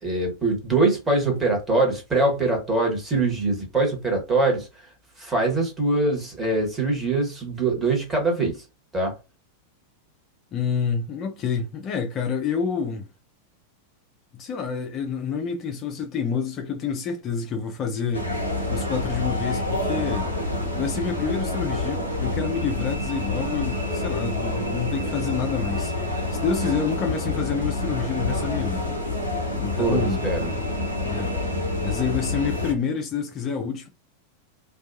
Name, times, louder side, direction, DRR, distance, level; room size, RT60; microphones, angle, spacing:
voice 1, 0.0-4.7 5.2-8.6 8.9-9.1 29.8-30.5, right 2 dB, 15° right, 1.2 m, -23 dB
voice 2, 10.5-13.1 14.3-20.3 20.7-29.0 29.6-30.2 31.1-31.3 31.8-33.9, left 6 dB, 30° left, 0.5 m, -28 dB
sound 1, 18.1-32.7, left 2 dB, 85° right, 0.8 m, -27 dB
2.3 x 2.3 x 2.6 m
figure-of-eight pair, 90°, 0 cm